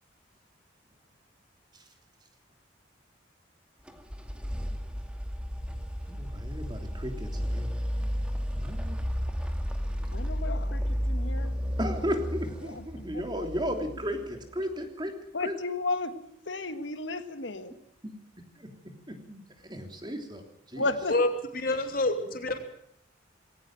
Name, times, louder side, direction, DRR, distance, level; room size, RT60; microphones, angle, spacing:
sound 1, 3.9-14.7, equal, 5° right, 2.3 m, -33 dB
voice 1, 6.0-7.7 8.5-9.0 11.8-15.5 18.0-18.2 18.5-18.7 19.1-20.9, equal, 25° right, 5 dB, 3.2 m, -35 dB
voice 2, 10.1-11.5 12.7-13.2 15.3-17.7 20.7-21.2, left 2 dB, 75° left, 9 dB, 1.6 m, -34 dB
voice 3, 21.5-22.6, left 2 dB, 50° left, 6 dB, 3.0 m, -27 dB
19.5 x 18.0 x 7.8 m, 0.68 s
head